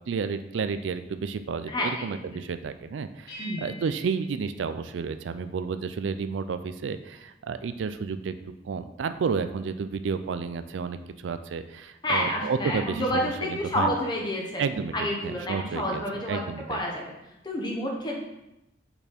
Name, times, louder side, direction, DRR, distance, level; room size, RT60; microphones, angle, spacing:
voice 1, 0.1-8.3 8.6-11.0 11.2-14.0 14.6-16.8, right 5 dB, 85° right, 11 dB, 0.4 m, -31 dB
voice 2, 1.7-2.0 3.4-3.6 12.0-14.6 14.9-16.4 16.7-17.0 17.4-18.2, left 1 dB, 25° left, -1 dB, 1.0 m, -29 dB
sound 1, 3.3-5.5, left 1 dB, 55° left, 1.9 m, -46 dB
5.6 x 4.3 x 4.3 m, 0.92 s
head